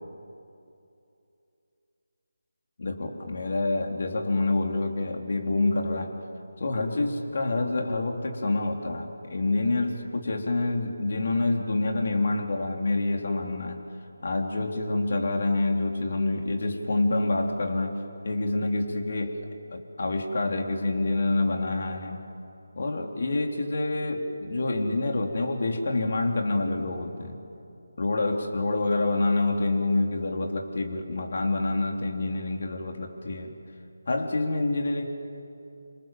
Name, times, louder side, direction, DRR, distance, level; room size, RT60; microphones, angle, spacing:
voice 1, 2.8-6.1 6.6-13.8 14.2-19.4 19.7-22.2 22.8-27.4 28.0-33.6 34.1-35.0, left 2 dB, 55° left, 2 dB, 3.8 m, -27 dB
28.0 x 26.0 x 7.7 m, 2.7 s
figure-of-eight pair, 165°, 0 cm